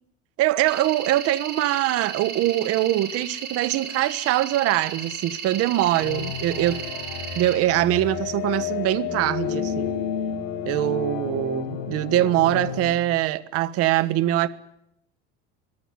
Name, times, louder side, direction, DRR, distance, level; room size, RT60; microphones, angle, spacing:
voice 1, 0.4-6.8 7.3-9.9 10.6-14.5, right 14 dB, 50° right, 1.4 m, -23 dB
sound 1, 0.7-7.5, right 6 dB, 35° right, 6.2 m, -35 dB
sound 2, 6.0-12.9, left 8 dB, 90° left, 6.7 m, -31 dB
24.0 x 22.0 x 9.8 m
cardioid pair, 175°, 31 cm